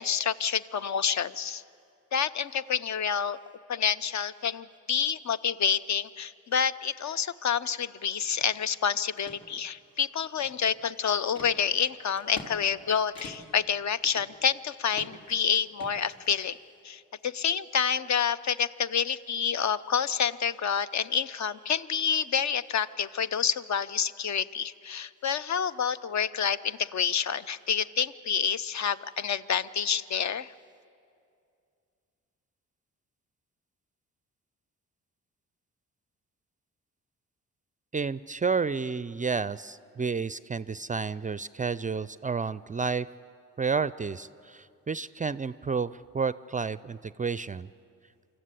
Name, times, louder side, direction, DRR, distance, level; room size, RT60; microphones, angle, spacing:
voice 1, 0.0-1.6 2.1-3.4 3.7-16.6 16.8-30.5, left 7 dB, 50° left, 15 dB, 0.7 m, -28 dB
sound 1, 8.4-8.5 9.0-9.4 9.9-10.8 11.4-11.5 12.1-12.5 12.8-12.9 13.2-13.6 14.0-14.6 14.9-15.3 15.8-16.6, left 2 dB, 65° left, 3.1 m, -45 dB
voice 2, 37.9-43.1 43.6-47.7, right 5 dB, 20° right, 17 dB, 0.4 m, -31 dB
25.0 x 14.0 x 8.2 m, 2.4 s
hypercardioid pair, 45°, 37 cm